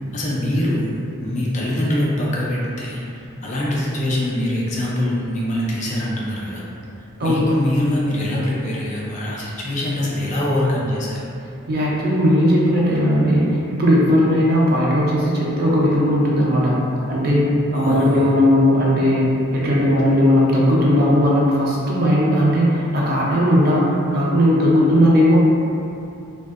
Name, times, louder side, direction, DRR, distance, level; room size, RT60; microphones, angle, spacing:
voice 1, 0.1-0.9 1.2-3.0 3.4-6.6 7.2-11.2 17.7-18.3, left 1 dB, 35° left, -5 dB, 0.3 m, -23 dB
voice 2, 11.7-16.7 17.1-19.3 19.5-25.4, equal, 45° right, -5 dB, 0.4 m, -17 dB
2.5 x 2.1 x 2.4 m, 2.7 s
head